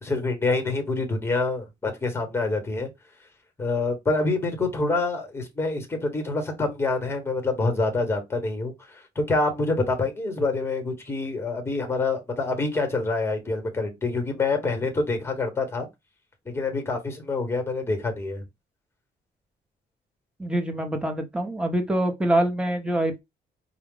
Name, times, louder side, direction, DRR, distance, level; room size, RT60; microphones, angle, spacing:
voice 1, 0.0-2.9 3.6-15.9 16.4-18.4, left 3 dB, 15° left, 1.2 m, -26 dB
voice 2, 20.4-23.2, right 1 dB, 5° right, 0.8 m, -25 dB
4.8 x 2.3 x 3.7 m
wide cardioid pair, 165°, 17 cm